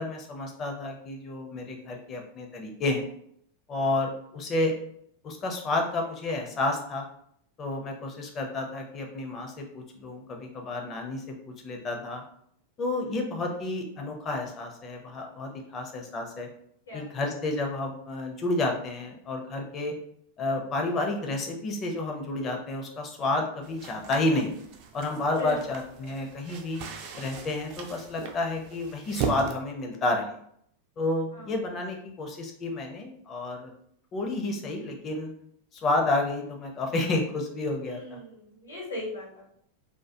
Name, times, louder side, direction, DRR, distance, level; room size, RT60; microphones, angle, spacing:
voice 1, 0.0-3.1 3.7-4.8 5.2-7.1 7.6-12.2 12.8-16.5 16.9-19.9 20.4-24.5 24.9-26.8 27.2-30.3 31.0-33.7 34.1-35.3 35.7-38.2, left 2 dB, 30° left, 2 dB, 0.5 m, -30 dB
sound 1, 23.6-29.6, right 6 dB, 45° right, 0.3 m, -38 dB
voice 2, 25.4-25.7 26.0-26.2 31.3-31.5 37.9-39.5, left 1 dB, 70° left, -4 dB, 0.8 m, -38 dB
2.1 x 2.1 x 2.8 m, 0.69 s
figure-of-eight pair, 90°, 0 cm